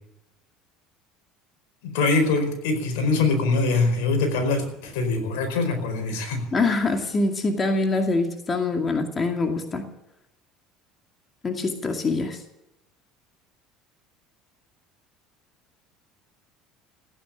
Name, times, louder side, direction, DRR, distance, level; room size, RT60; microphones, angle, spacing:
voice 1, 1.8-6.4, left 3 dB, 80° left, 5 dB, 4.6 m, -23 dB
voice 2, 6.5-9.9 11.4-12.4, left 3 dB, 30° left, 3 dB, 2.3 m, -24 dB
16.0 x 9.9 x 8.8 m, 0.86 s
supercardioid pair, 100°, 0 cm